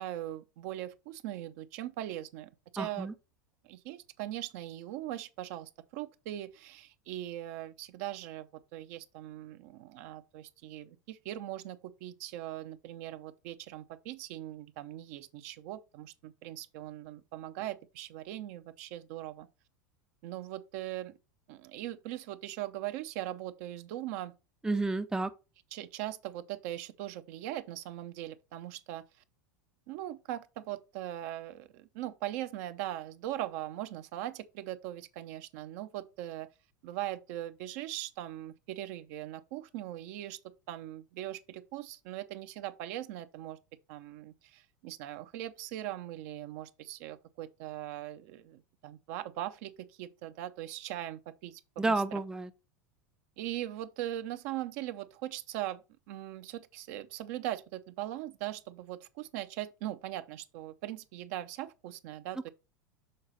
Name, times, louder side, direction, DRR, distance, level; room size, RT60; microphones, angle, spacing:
voice 1, 0.0-3.1 3.6-19.5 20.2-21.1 21.5-24.3 25.7-29.0 29.9-36.5 36.8-40.4 40.7-43.6 43.9-52.0 53.4-55.8 56.1-62.5, right 13 dB, 60° right, 0.6 m, -40 dB
voice 2, 2.8-3.1 24.6-25.3 51.8-52.5, right 3 dB, 5° right, 0.4 m, -30 dB
6.5 x 3.9 x 4.1 m
hypercardioid pair, 90°, 10 cm